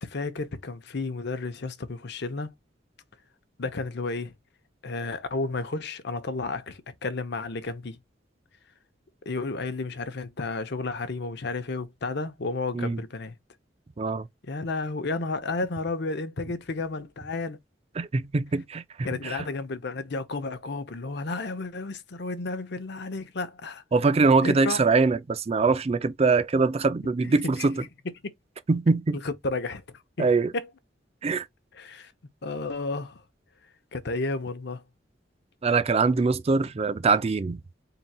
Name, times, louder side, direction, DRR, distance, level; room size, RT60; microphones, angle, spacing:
voice 1, 0.0-2.5 3.6-4.3 4.8-8.0 9.3-13.4 14.4-17.6 19.0-23.8 24.4-24.8 27.2-27.8 29.1-29.8 30.2-30.3 30.5-30.7 31.7-32.1 32.4-33.2 33.9-34.8, left 3 dB, 60° left, 0.7 m, -32 dB
voice 2, 14.0-14.3 18.0-19.4 23.9-27.8 28.7-29.2 30.2-30.5 31.2-31.5 35.6-37.6, right 4 dB, 35° right, 0.4 m, -23 dB
4.2 x 3.8 x 2.2 m
head